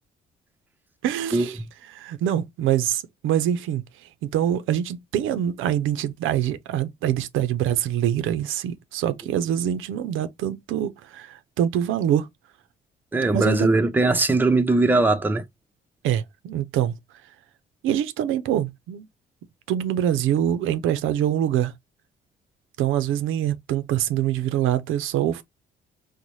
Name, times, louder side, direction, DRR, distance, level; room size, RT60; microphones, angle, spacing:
voice 1, 1.0-1.6 1.9-3.8 4.3-12.3 13.3-13.7 16.0-16.9 17.8-19.1 19.7-21.7 22.8-25.4, right 10 dB, 85° right, 0.5 m, -24 dB
voice 2, 13.1-15.4, right 2 dB, 10° right, 0.5 m, -20 dB
4.0 x 2.1 x 3.0 m
cardioid pair, 90°, 20 cm